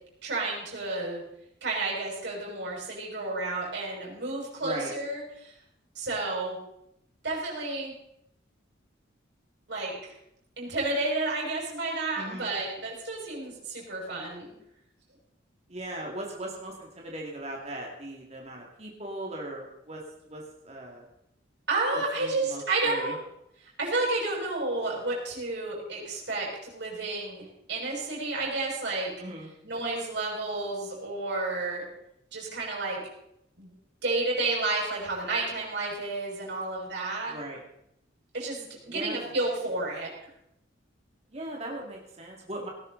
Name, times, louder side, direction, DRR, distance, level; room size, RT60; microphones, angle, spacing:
voice 1, 0.2-1.2 1.6-5.5 5.9-6.6 7.2-7.9 9.7-10.1 10.6-14.5 21.7-23.2 23.8-29.1 29.6-31.9 32.3-33.0 33.6-33.7 34.0-37.3 38.3-40.1, right 2 dB, 60° right, -3 dB, 6.2 m, -31 dB
voice 2, 4.6-4.9 12.2-12.5 15.7-20.0 20.3-21.1 21.9-23.1 29.2-29.5 37.3-37.6 38.9-39.2 41.3-42.7, right 1 dB, 35° right, -1 dB, 2.5 m, -38 dB
18.5 x 12.0 x 4.1 m, 0.78 s
head